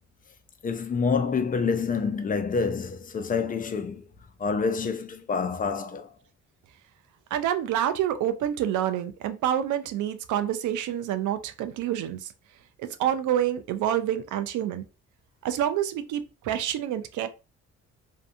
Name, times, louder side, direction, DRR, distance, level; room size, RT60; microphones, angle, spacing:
voice 1, 0.6-4.0 4.4-6.1, left 5 dB, 30° left, 0.4 m, -27 dB
voice 2, 7.3-12.3 12.8-14.8 15.4-17.3, right 10 dB, 80° right, 0.5 m, -27 dB
2.6 x 2.2 x 2.5 m
cardioid pair, 90°, 30 cm